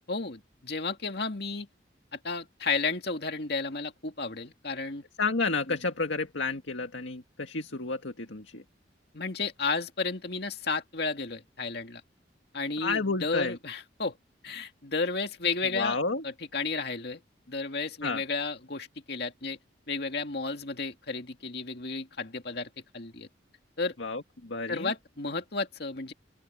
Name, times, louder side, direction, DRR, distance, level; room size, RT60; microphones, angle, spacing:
voice 1, 0.1-1.7 2.1-5.0 5.7-5.8 9.1-12.0 12.5-14.2 14.4-16.0 16.2-17.2 17.5-19.6 19.9-23.3 23.8-23.9 24.7-26.1, left 4 dB, 60° left, 2.2 m, -32 dB
voice 2, 5.2-8.6 12.8-13.6 15.7-16.2 18.0-18.2 24.0-24.9, left 3 dB, 85° left, 2.0 m, -31 dB
open air
head